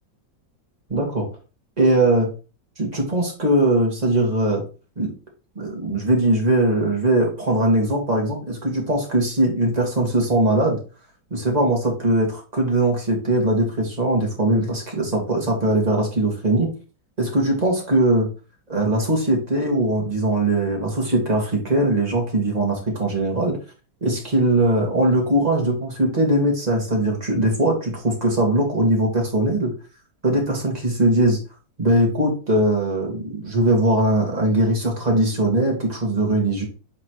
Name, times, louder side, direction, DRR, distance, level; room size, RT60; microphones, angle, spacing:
voice 1, 0.9-1.3 1.8-2.3 2.8-4.6 5.0-5.1 5.6-10.8 11.3-16.7 17.2-18.3 18.7-23.6 24.0-29.7 30.2-31.4 31.8-36.6, right 1 dB, 20° right, 0 dB, 1.9 m, -20 dB
7.4 x 4.1 x 3.0 m, 0.34 s
omnidirectional pair, 2.0 m